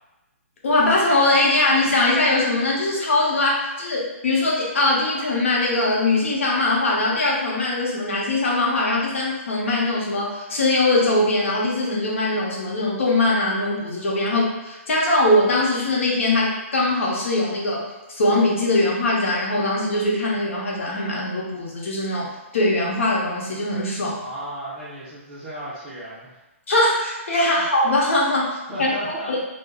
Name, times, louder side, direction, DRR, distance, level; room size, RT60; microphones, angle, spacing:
voice 1, 0.6-24.2 26.7-28.9 29.3-29.4, left 2 dB, 60° left, -3 dB, 0.9 m, -21 dB
voice 2, 24.2-26.4 28.4-29.3, equal, 10° right, -14 dB, 0.5 m, -34 dB
2.6 x 2.1 x 3.5 m, 1.0 s
hypercardioid pair, 165°, 8 cm